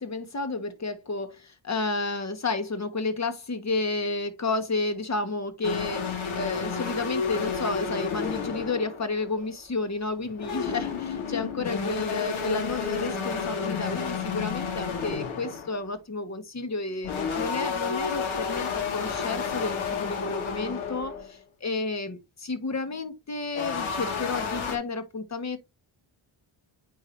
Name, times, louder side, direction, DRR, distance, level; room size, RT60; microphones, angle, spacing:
voice 1, 0.0-25.6, left 3 dB, 35° left, 1.5 m, -31 dB
sound 1, 5.6-9.5 10.2-15.8 17.0-21.3 23.6-24.8, left 5 dB, 85° left, 2.2 m, -31 dB
8.8 x 4.9 x 2.7 m
cardioid pair, 105°, 47 cm